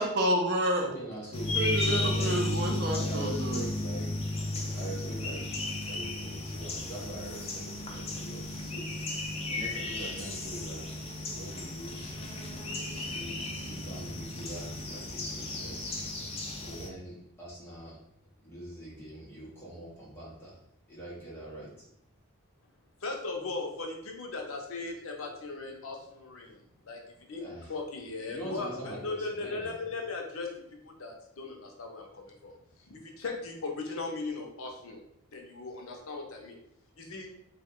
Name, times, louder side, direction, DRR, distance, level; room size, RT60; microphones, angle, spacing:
voice 1, 0.0-0.9 1.5-3.7, right 1 dB, 50° right, 1 dB, 0.5 m, -29 dB
voice 2, 0.8-2.4 2.9-4.1 4.7-5.4 5.9-8.9 9.5-10.8 11.3-12.1 13.1-16.0 16.6-17.9 18.4-20.5 20.9-21.7 27.4-27.7 28.3-29.7, right 1 dB, 10° left, -6 dB, 0.9 m, -43 dB
sound 1, 1.3-16.9, left 2 dB, 30° left, 0.4 m, -34 dB
voice 3, 23.0-26.6 26.9-27.0 27.3-30.5 30.8-32.5 32.9-35.0 35.3-36.6 37.0-37.3, left 3 dB, 75° left, 2 dB, 0.6 m, -38 dB
3.0 x 2.2 x 3.6 m, 0.73 s
head